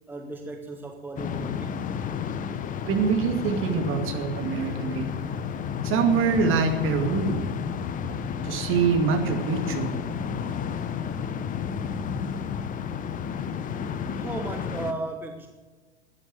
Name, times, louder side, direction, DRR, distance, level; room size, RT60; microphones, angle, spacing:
voice 1, 0.1-1.8 4.5-5.2 14.1-15.5, right 2 dB, 5° right, 4 dB, 1.1 m, -36 dB
sound 1, 1.2-14.9, left 7 dB, 25° left, 0.8 m, -31 dB
voice 2, 2.9-5.3 5.8-7.4 8.4-9.9, right 5 dB, 35° right, 5 dB, 2.4 m, -25 dB
13.0 x 9.8 x 7.8 m, 1.3 s
figure-of-eight pair, 90°, 35 cm